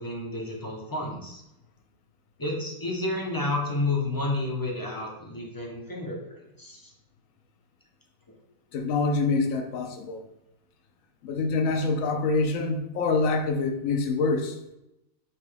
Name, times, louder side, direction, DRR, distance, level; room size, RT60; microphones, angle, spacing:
voice 1, 0.0-1.4 2.4-6.9, left 2 dB, 30° left, -2 dB, 0.4 m, -31 dB
voice 2, 8.7-10.2 11.2-14.5, left 3 dB, 75° left, 4 dB, 1.0 m, -25 dB
6.0 x 2.3 x 3.2 m, 0.86 s
omnidirectional pair, 1.4 m